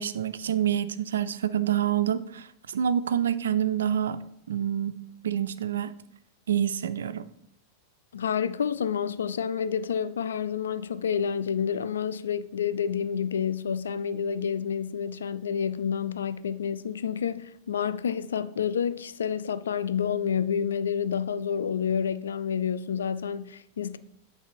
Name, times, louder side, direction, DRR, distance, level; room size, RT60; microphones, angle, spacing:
voice 1, 0.0-4.2 4.5-5.0 5.2-5.9 6.5-7.3, right 9 dB, 65° right, 0.3 m, -27 dB
voice 2, 8.1-24.0, left 7 dB, 65° left, 0.3 m, -29 dB
8.1 x 3.3 x 4.4 m
figure-of-eight pair, 90°, 0 cm